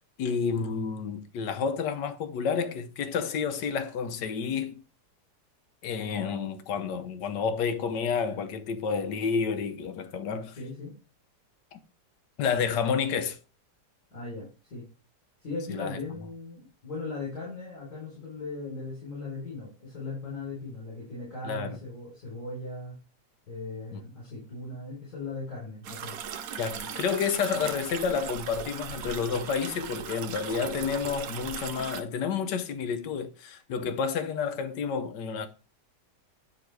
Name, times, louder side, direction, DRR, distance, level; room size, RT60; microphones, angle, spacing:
voice 1, 0.2-4.8 5.8-10.6 11.7-11.8 12.4-13.4 15.7-16.0 21.5-21.8 23.9-24.0 26.6-35.5, left 6 dB, 90° left, 1.5 m, -30 dB
voice 2, 10.6-10.9 14.1-14.9 15.4-22.9 23.5-26.1 26.8-26.9, left 3 dB, 60° left, 4.5 m, -38 dB
sound 1, 25.8-32.0, right 8 dB, 65° right, 1.0 m, -38 dB
9.4 x 3.8 x 4.6 m
omnidirectional pair, 1.8 m